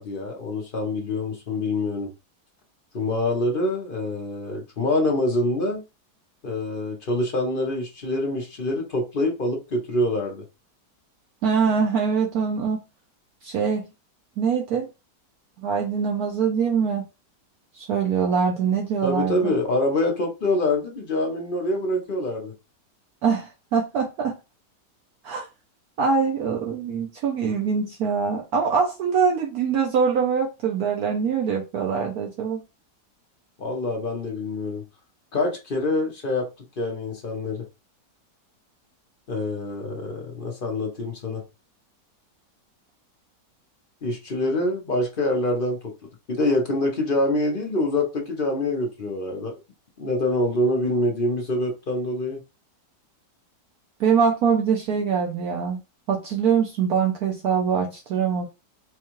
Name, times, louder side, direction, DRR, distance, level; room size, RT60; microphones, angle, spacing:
voice 1, 0.0-2.1 2.9-5.8 6.4-10.4 19.0-22.5 33.6-34.8 35.3-36.5 36.8-37.6 39.3-41.4 44.0-45.9 46.3-49.5 50.0-52.4, left 1 dB, 45° left, 0.8 m, -25 dB
voice 2, 11.4-12.8 13.4-13.9 14.4-14.9 15.6-17.0 17.7-19.5 23.2-24.4 25.2-25.5 26.0-32.6 54.0-55.8 56.1-58.4, right 6 dB, 65° right, 1.1 m, -23 dB
4.5 x 2.3 x 3.0 m
omnidirectional pair, 1.9 m